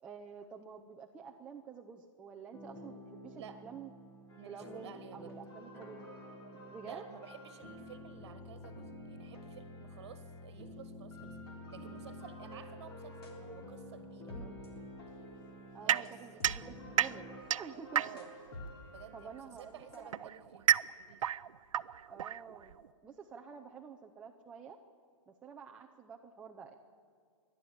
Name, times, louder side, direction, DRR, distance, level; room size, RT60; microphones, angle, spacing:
voice 1, 0.0-3.9 4.5-6.1 6.6-7.0 14.3-14.6 15.7-17.3 17.6-18.0 19.1-20.3 22.1-24.8 25.3-26.7, right 6 dB, 5° right, 1 dB, 0.5 m, -49 dB
sound 1, 2.5-17.4, left 1 dB, 15° left, 1.6 m, -50 dB
sound 2, 4.3-5.0 5.3-10.6 11.1-20.2, equal, 50° left, 3.6 m, -52 dB
voice 2, 4.4-5.4 5.7-5.8 6.8-11.4 11.7-14.6 15.8-16.1 17.9-18.3 18.9-20.6 20.9-21.3, right 9 dB, 45° right, 10 dB, 1.6 m, -52 dB
sound 3, 15.9-18.5 19.5-22.9, right 10 dB, 75° right, 0.6 m, -33 dB
28.0 x 11.5 x 8.6 m, 2.2 s
hypercardioid pair, 165°, 17 cm